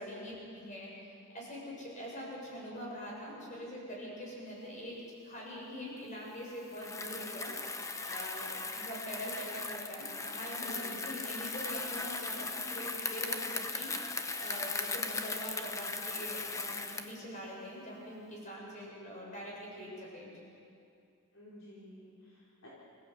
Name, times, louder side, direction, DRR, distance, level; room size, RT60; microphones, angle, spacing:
voice 1, 0.0-5.0 5.2-7.5 8.0-20.4, equal, 35° left, -4 dB, 7.5 m, -44 dB
Bicycle, 6.7-17.2, left 3 dB, 15° left, 0.8 m, -38 dB
voice 2, 10.5-11.0 21.3-22.7, left 1 dB, 60° left, -7 dB, 4.3 m, -49 dB
26.5 x 16.5 x 8.4 m, 2.5 s
head